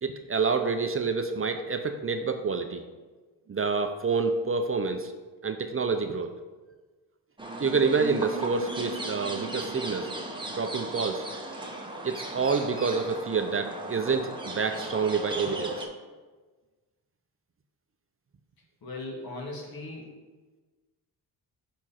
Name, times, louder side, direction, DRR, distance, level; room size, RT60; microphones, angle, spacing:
voice 1, 0.0-2.8 3.5-5.1 5.4-6.3 7.6-10.1 10.5-11.2 12.0-15.9, right 4 dB, 30° right, 6 dB, 0.6 m, -28 dB
sound 1, 7.4-15.8, right 1 dB, 10° right, 1.3 m, -37 dB
voice 2, 18.8-20.1, left 2 dB, 60° left, 0 dB, 1.8 m, -38 dB
6.2 x 4.4 x 5.7 m, 1.3 s
cardioid pair, 70°, 41 cm